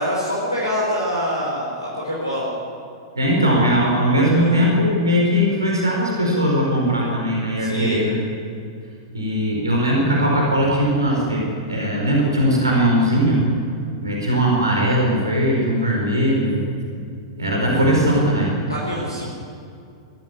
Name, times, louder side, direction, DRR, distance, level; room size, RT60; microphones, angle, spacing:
voice 1, 0.0-2.5 4.2-4.5 7.6-8.0 18.7-19.2, equal, 85° left, -5 dB, 5.1 m, -25 dB
voice 2, 3.2-8.2 9.1-13.5 14.0-16.7 17.4-18.6, equal, 80° right, -1 dB, 4.8 m, -19 dB
24.5 x 13.5 x 8.5 m, 2.5 s
figure-of-eight pair, 95°, 2 cm